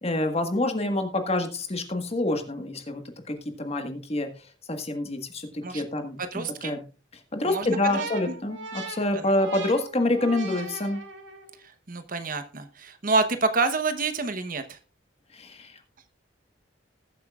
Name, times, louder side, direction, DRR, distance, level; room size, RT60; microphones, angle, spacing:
voice 1, 0.0-3.0 3.3-4.3 4.7-6.8 7.3-11.0 15.3-15.8, left 2 dB, 35° left, 1.5 m, -27 dB
voice 2, 6.2-6.7 7.4-8.3 11.6-14.8, right 3 dB, 45° right, 1.0 m, -28 dB
sound 1, 7.7-11.6, right 4 dB, 75° right, 2.3 m, -38 dB
20.0 x 7.7 x 2.4 m
head